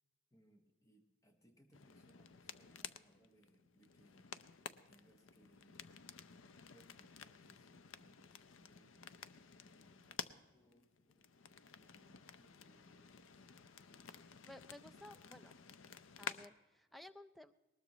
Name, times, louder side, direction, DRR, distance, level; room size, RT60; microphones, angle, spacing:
voice 1, 0.3-4.3 4.9-5.8 6.7-11.3 11.8-14.2, right 1 dB, 15° left, 5 dB, 1.2 m, -71 dB
sound 1, 1.7-16.5, left 7 dB, 80° left, 0.6 m, -53 dB
voice 2, 14.4-15.6 16.2-17.6, left 1 dB, ahead, 11 dB, 0.4 m, -56 dB
19.5 x 19.5 x 3.0 m, 1.2 s
head